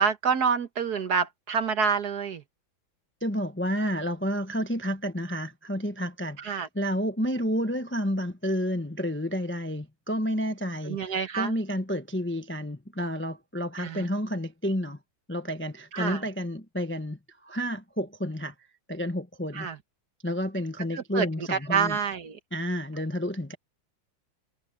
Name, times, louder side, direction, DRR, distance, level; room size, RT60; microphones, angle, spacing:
voice 1, 0.0-2.4 6.4-6.7 10.8-11.5 13.8-14.1 15.9-16.3 19.5-19.8 20.9-22.4, right 6 dB, 55° right, 1.7 m, -27 dB
voice 2, 3.2-15.0 15.3-18.5 18.9-19.7 20.2-22.0 22.5-23.6, equal, 10° left, 0.7 m, -30 dB
omnidirectional pair, 2.2 m